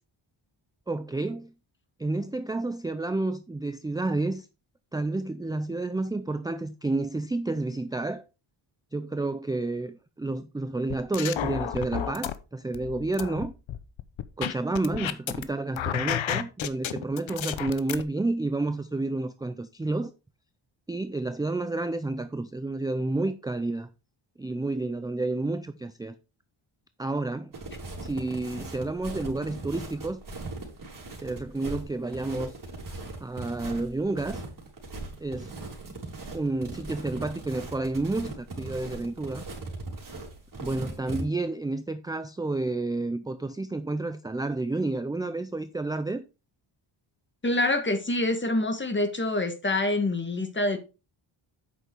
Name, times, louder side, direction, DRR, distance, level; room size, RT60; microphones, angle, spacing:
voice 1, 0.9-1.5 2.0-4.5 4.9-8.2 8.9-13.5 14.4-20.1 20.9-23.9 24.4-26.2 27.0-27.5 28.0-30.2 31.2-32.5 33.2-34.4 35.2-35.5 36.3-39.4 40.6-46.2, right 2 dB, 10° right, 0.3 m, -30 dB
sound 1, 10.9-12.3 12.7-15.4 15.7-18.0, left 10 dB, 65° left, 0.8 m, -31 dB
sound 2, 27.5-41.2, right 2 dB, 40° right, 3.3 m, -39 dB
voice 2, 47.4-50.8, left 2 dB, 20° left, 1.6 m, -26 dB
8.2 x 5.9 x 4.5 m
wide cardioid pair, 115°, 50 cm